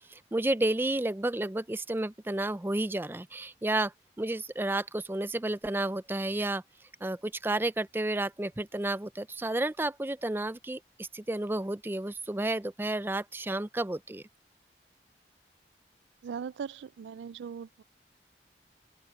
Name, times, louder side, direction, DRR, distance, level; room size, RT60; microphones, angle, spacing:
voice 1, 0.1-3.9 4.2-6.6 7.0-14.2, right 2 dB, 10° right, 0.4 m, -31 dB
voice 2, 16.2-17.8, right 7 dB, 90° right, 0.3 m, -39 dB
open air
head